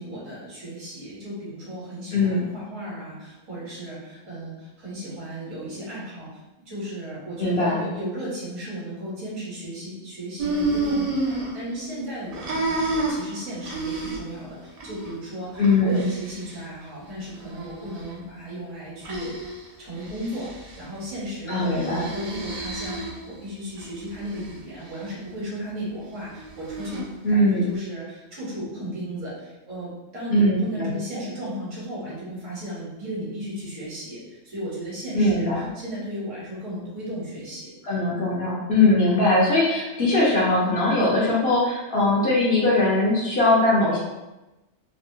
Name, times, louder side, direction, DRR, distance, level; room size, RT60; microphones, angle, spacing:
voice 1, 0.0-6.3 6.7-11.2 11.5-19.3 19.8-37.7, equal, 75° right, -7 dB, 1.5 m, -35 dB
voice 2, 2.1-2.4 7.4-7.9 15.6-16.1 21.5-22.1 27.2-27.7 30.3-30.9 35.1-35.7 37.8-44.0, left 2 dB, 60° left, -5 dB, 0.8 m, -21 dB
sound 1, 10.4-12.0 12.3-14.4 14.8-15.1 15.6-16.6 17.3-18.1 19.0-19.6 20.0-20.8 21.6-23.3 23.8-24.6 26.4-27.0, right 2 dB, 60° right, 0.4 m, -30 dB
3.5 x 2.0 x 2.6 m, 1.0 s
omnidirectional pair, 1.4 m